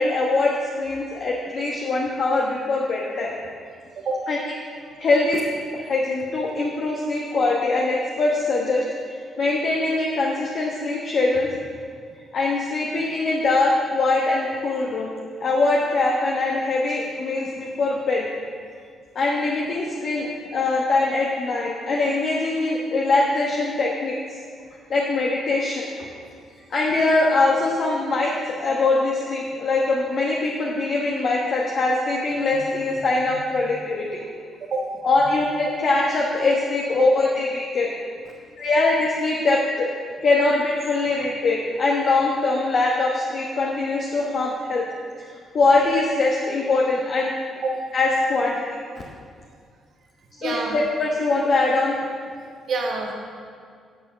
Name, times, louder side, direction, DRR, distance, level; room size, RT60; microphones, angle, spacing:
voice 1, 0.0-3.3 4.3-4.4 5.0-5.4 5.7-8.8 9.4-11.5 12.3-15.1 15.4-18.3 19.1-24.2 24.9-25.8 26.7-34.2 35.0-37.9 38.6-39.9 40.2-44.8 45.5-47.3 47.9-48.6 50.4-51.9, left 3 dB, 55° left, -3 dB, 1.2 m, -22 dB
voice 2, 50.4-50.8 52.7-53.1, right 3 dB, 60° right, 0 dB, 1.7 m, -27 dB
10.0 x 5.7 x 7.1 m, 2.2 s
cardioid pair, 90°, 0 cm